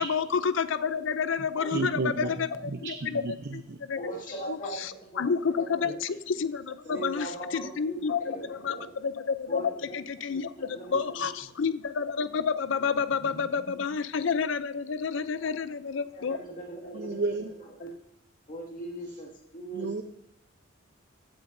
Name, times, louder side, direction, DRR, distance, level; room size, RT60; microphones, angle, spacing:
voice 1, 0.0-4.1 4.4-16.4, left 6 dB, 70° left, 14 dB, 0.5 m, -30 dB
voice 2, 1.7-2.3 2.8-3.8 5.8-5.9 16.9-17.5 19.7-20.0, right 3 dB, 60° right, 5 dB, 0.7 m, -32 dB
voice 3, 4.0-5.2 5.6-6.0 6.9-8.9 9.5-10.0 10.7-11.2 16.1-17.2 17.8-17.9 18.5-19.9, right 1 dB, 45° left, -2 dB, 2.2 m, -39 dB
15.0 x 8.8 x 2.7 m, 0.75 s
head